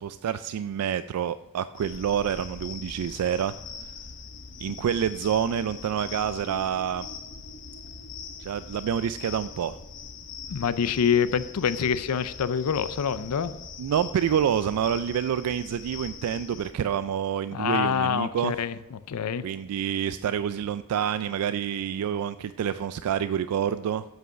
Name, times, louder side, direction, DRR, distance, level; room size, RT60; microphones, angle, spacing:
voice 1, 0.0-3.5 4.6-7.1 8.4-9.8 13.8-18.6 19.4-24.0, right 8 dB, 75° right, 14 dB, 0.3 m, -27 dB
sound 1, 1.7-16.7, left 5 dB, 60° left, 1.0 m, -42 dB
voice 2, 10.5-13.5 17.5-19.5, left 7 dB, 85° left, 15 dB, 0.5 m, -26 dB
8.1 x 7.7 x 5.7 m, 1.0 s
head